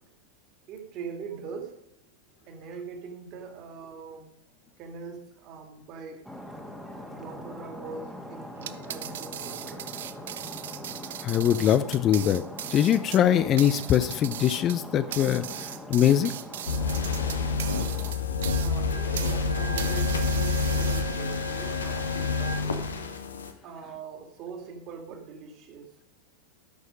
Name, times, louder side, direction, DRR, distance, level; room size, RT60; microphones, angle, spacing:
voice 1, 0.7-1.8 2.5-4.3 4.8-6.2 7.0-9.9 18.3-22.8 23.6-25.9, right 5 dB, 40° right, 3 dB, 2.3 m, -42 dB
Stream, 6.2-18.1, equal, ahead, 1.6 m, -42 dB
sound 1, 8.5-19.4 19.8-21.4, right 11 dB, 60° right, 0.5 m, -39 dB
voice 2, 11.2-12.4 12.7-16.3, left 10 dB, 30° left, 13 dB, 0.5 m, -22 dB
sound 2, 16.7-23.5, left 4 dB, 70° left, 1.0 m, -28 dB
13.5 x 6.4 x 5.1 m, 0.76 s
figure-of-eight pair, 90°, 0 cm